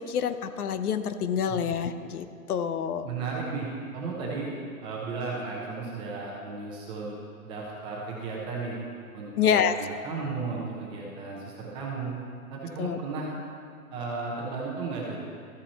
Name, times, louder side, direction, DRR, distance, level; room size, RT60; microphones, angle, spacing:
voice 1, 0.0-3.1 9.4-9.8 12.8-13.0, left 7 dB, 80° left, 10 dB, 0.7 m, -27 dB
voice 2, 3.0-3.7 3.9-4.5 4.8-7.1 7.4-8.8 9.1-12.1 12.5-13.3 13.9-15.2, right 4 dB, 10° right, -3 dB, 0.7 m, -34 dB
13.5 x 5.8 x 4.2 m, 2.3 s
hypercardioid pair, 155°, 44 cm